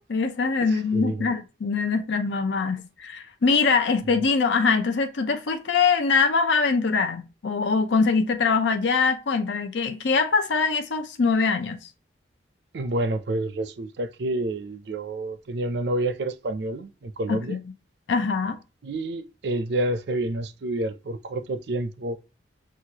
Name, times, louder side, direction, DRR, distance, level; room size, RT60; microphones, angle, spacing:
voice 1, 0.0-11.8 17.3-17.6 18.1-18.6, left 4 dB, 75° left, 0.6 m, -23 dB
voice 2, 0.9-1.3 12.7-17.6 18.8-22.2, right 2 dB, 60° right, 0.5 m, -29 dB
6.2 x 2.4 x 2.8 m
head